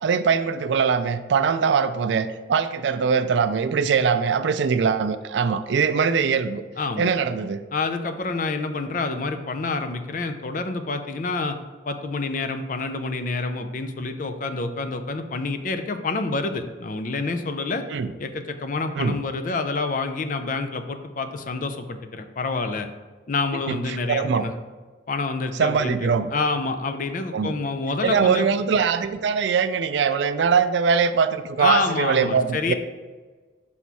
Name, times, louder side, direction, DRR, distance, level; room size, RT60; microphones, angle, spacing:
voice 1, 0.0-6.6 7.0-7.6 17.9-18.1 19.0-19.2 23.7-23.8 24.1-24.5 25.6-26.3 27.3-27.5 28.0-32.7, right 6 dB, 75° right, 11 dB, 0.4 m, -22 dB
voice 2, 6.8-7.1 7.7-11.6 11.8-17.8 18.2-22.9 23.3-24.5 25.1-28.5 31.6-32.7, left 3 dB, 45° left, 8 dB, 0.5 m, -27 dB
5.6 x 4.2 x 4.6 m, 1.4 s
head